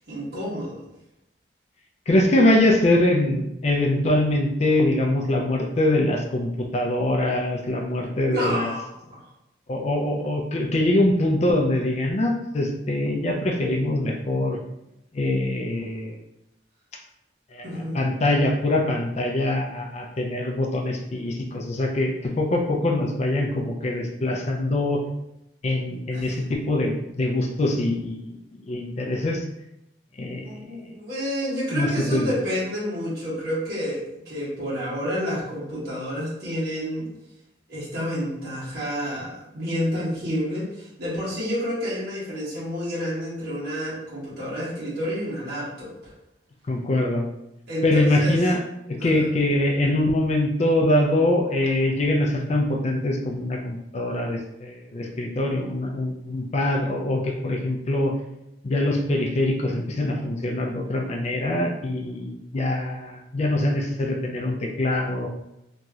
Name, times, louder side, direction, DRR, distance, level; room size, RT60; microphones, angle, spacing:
voice 1, 0.1-0.8 8.3-9.2 17.6-18.0 26.1-26.3 30.4-37.1 37.7-46.1 47.7-48.4 49.0-49.3, equal, 60° right, -8 dB, 1.4 m, -29 dB
voice 2, 2.1-8.7 9.7-14.6 15.1-16.2 17.5-25.0 25.6-28.4 28.7-29.4 30.2-30.5 31.7-32.3 46.7-47.3 47.8-48.6 48.9-58.1 58.6-65.3, left 1 dB, 35° left, 1 dB, 0.4 m, -23 dB
3.0 x 2.7 x 2.4 m, 0.86 s
head